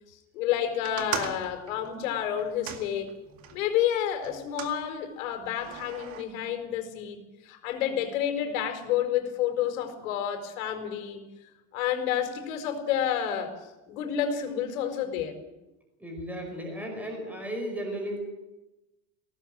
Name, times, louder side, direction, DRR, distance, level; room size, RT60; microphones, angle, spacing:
voice 1, 0.3-3.1 3.5-11.3 11.7-13.5 13.9-15.3, left 9 dB, 80° left, 7 dB, 4.8 m, -29 dB
sound 1, 0.8-3.6 4.2-4.8 5.6-6.2, right 9 dB, 35° right, 2.1 m, -38 dB
voice 2, 16.0-18.2, equal, 5° right, 2 dB, 5.1 m, -35 dB
21.0 x 18.0 x 7.6 m, 1.0 s
supercardioid pair, 180°, 40 cm